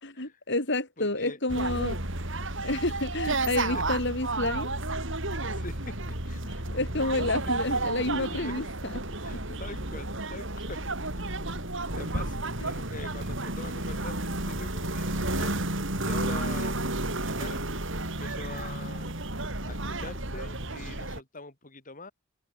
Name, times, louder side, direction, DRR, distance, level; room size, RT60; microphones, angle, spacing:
voice 1, 0.0-2.0 2.6-4.7 6.4-8.9 9.5-9.6 12.6-12.7, left 2 dB, 60° left, 7.2 m, -30 dB
voice 2, 1.0-1.4 3.7-3.8 5.5-6.4 7.6-7.8 8.4-8.6 9.2-10.8 11.1-11.3 12.0-12.4 12.6-15.6 16.0-16.8 17.4-17.7 18.0-19.1 19.7-22.1, left 2 dB, 40° left, 6.6 m, -43 dB
sound 1, 1.5-21.2, right 2 dB, 65° right, 7.3 m, -32 dB
head